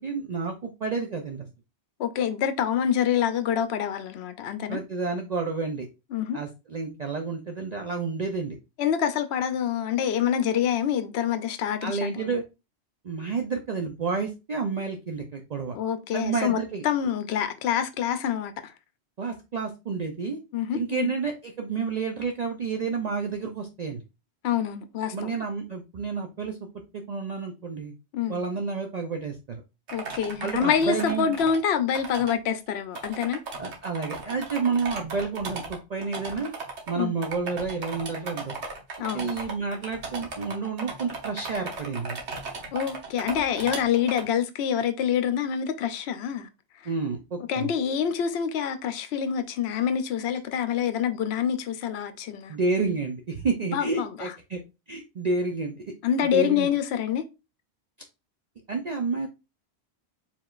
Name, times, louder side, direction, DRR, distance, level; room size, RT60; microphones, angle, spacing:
voice 1, 0.0-1.5 4.7-5.9 6.3-8.6 11.8-12.4 13.0-15.8 16.1-16.8 19.2-20.4 20.7-24.0 25.1-26.6 27.1-27.9 28.3-29.6 30.4-31.3 33.6-36.5 36.9-38.5 39.1-42.2 46.8-47.7 52.5-54.6 54.9-55.9 56.3-56.7 58.7-59.3, right 4 dB, 50° right, 0.6 m, -30 dB
voice 2, 2.0-4.8 6.1-6.4 8.8-12.3 15.7-18.7 20.5-21.1 24.4-25.3 28.1-28.4 29.9-33.4 37.0-37.1 39.0-39.4 42.7-46.5 47.5-52.6 53.7-54.3 56.0-57.3, left 8 dB, 75° left, 0.8 m, -26 dB
sound 1, 29.9-31.6 31.9-32.3 32.7-32.8 32.9-36.9 37.2-44.2, right 4 dB, 85° right, 1.4 m, -36 dB
4.7 x 3.6 x 2.4 m
omnidirectional pair, 1.1 m